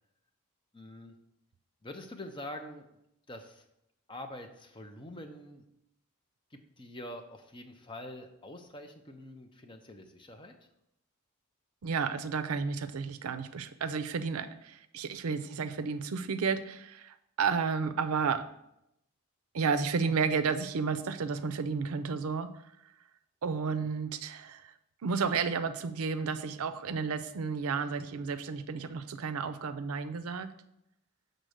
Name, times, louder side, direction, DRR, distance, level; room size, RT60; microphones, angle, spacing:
voice 1, 0.7-1.1 1.8-3.0 3.3-3.7 4.1-5.6 6.5-10.5, left 1 dB, 20° left, 5 dB, 0.6 m, -45 dB
voice 2, 11.8-18.4 19.5-22.5 23.4-24.7 25.0-30.5, right 5 dB, 80° right, 11 dB, 0.5 m, -32 dB
6.6 x 4.0 x 6.4 m, 0.82 s
head